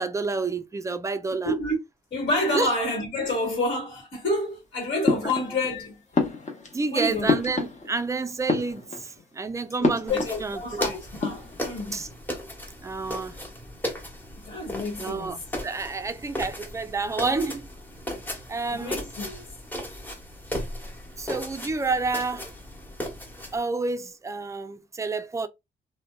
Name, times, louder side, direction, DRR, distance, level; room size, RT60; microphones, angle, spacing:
voice 1, 0.0-1.5 2.5-2.7 5.2-5.3 6.7-11.0 11.9-12.1 12.8-13.4 15.0-15.4 15.6-17.7 18.5-19.1 21.2-22.5 23.5-25.5, right 3 dB, 15° right, 0.3 m, -29 dB
voice 2, 1.4-1.8 2.1-6.0 6.9-7.3 9.8-12.0 14.4-15.4 18.7-19.4, left 1 dB, 55° left, 1.4 m, -29 dB
sound 1, 5.0-5.8 6.1-8.1 8.4-9.2 9.8-10.8 11.1-11.6, left 3 dB, 35° left, 0.8 m, -28 dB
sound 2, 10.1-23.6, equal, 10° left, 0.9 m, -36 dB
2.6 x 2.1 x 2.2 m
cardioid pair, 90°, 20 cm